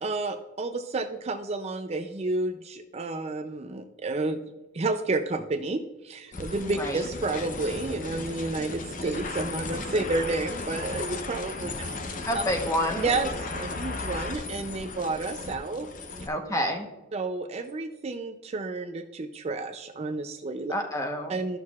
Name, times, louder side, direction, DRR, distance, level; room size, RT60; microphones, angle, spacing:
voice 1, 0.0-4.4 4.7-12.4 13.0-15.9 17.1-20.7 21.3-21.6, right 3 dB, 30° right, 6 dB, 0.4 m, -31 dB
sound 1, 6.3-16.3, left 3 dB, 40° left, 0.7 m, -35 dB
voice 2, 6.7-7.0 12.2-13.1 16.3-16.9 20.7-21.4, equal, 15° left, 3 dB, 1.0 m, -28 dB
13.0 x 6.4 x 2.4 m, 1.1 s
head